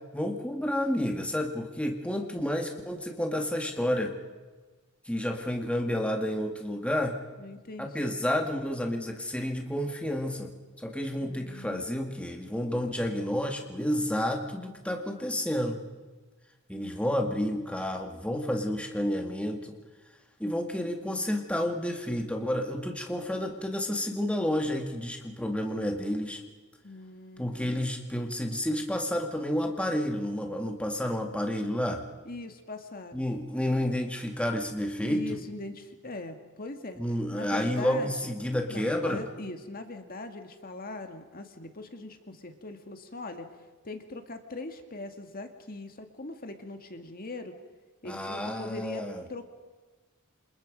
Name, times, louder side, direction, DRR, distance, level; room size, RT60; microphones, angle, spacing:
voice 1, 0.1-4.1 5.1-7.2 7.8-10.5 10.8-15.8 16.7-19.7 20.4-26.4 27.4-32.0 33.1-35.4 37.0-39.2 48.0-49.2, left 1 dB, 5° left, 2 dB, 2.0 m, -30 dB
voice 2, 7.4-8.2 11.2-12.2 26.8-27.9 32.2-33.3 35.0-37.0 37.3-38.1 38.7-43.5 43.8-47.6 48.0-49.4, left 2 dB, 40° left, 6 dB, 1.9 m, -41 dB
28.5 x 27.5 x 5.3 m, 1.3 s
head